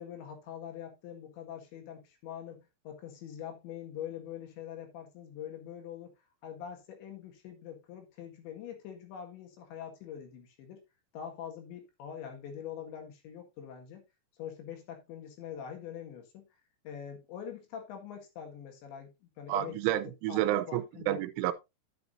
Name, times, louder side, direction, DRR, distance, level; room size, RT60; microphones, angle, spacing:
voice 1, 0.0-6.1 6.4-10.8 11.1-14.0 14.4-16.5 16.8-19.9 20.3-21.2, left 9 dB, 70° left, 3.9 m, -44 dB
voice 2, 19.5-21.5, right 14 dB, 85° right, 3.1 m, -30 dB
11.0 x 8.3 x 2.6 m
omnidirectional pair, 5.7 m